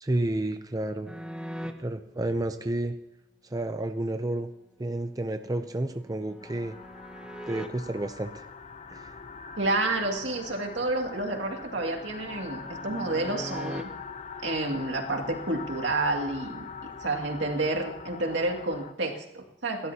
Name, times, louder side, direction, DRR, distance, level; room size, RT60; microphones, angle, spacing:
voice 1, 0.0-1.1 1.8-2.9 3.5-4.5 4.8-6.7 7.5-8.3 8.9-9.1, right 1 dB, 20° right, 8 dB, 0.5 m, -30 dB
sound 1, 1.1-1.7 5.1-7.7 10.8-13.8, equal, 5° right, 0.9 m, -42 dB
sound 2, 6.4-18.9, left 5 dB, 40° left, 0.6 m, -43 dB
voice 2, 9.6-13.9 14.4-16.7 17.0-19.9, right 2 dB, 75° right, 2 dB, 2.3 m, -29 dB
28.0 x 12.5 x 2.8 m, 0.84 s
head